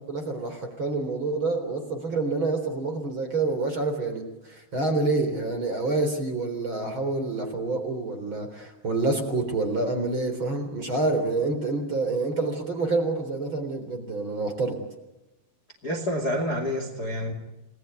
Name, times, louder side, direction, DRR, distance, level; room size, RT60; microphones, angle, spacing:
voice 1, 0.1-14.8, right 3 dB, 30° right, 6 dB, 4.0 m, -27 dB
voice 2, 15.8-17.3, equal, 25° left, 5 dB, 2.6 m, -28 dB
29.5 x 20.0 x 9.3 m, 1.0 s
omnidirectional pair, 5.1 m